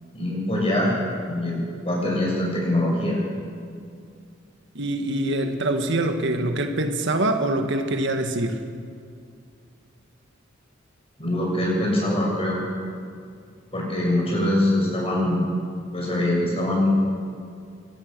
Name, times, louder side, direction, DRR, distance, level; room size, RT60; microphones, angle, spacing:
voice 1, 0.1-0.9 1.2-1.6 1.8-3.2 11.2-12.6 13.7-15.4 15.9-16.9, left 1 dB, 30° left, -2 dB, 7.3 m, -23 dB
voice 2, 4.8-8.6, right 1 dB, 65° right, 5 dB, 1.7 m, -24 dB
25.0 x 18.0 x 6.8 m, 2.3 s
head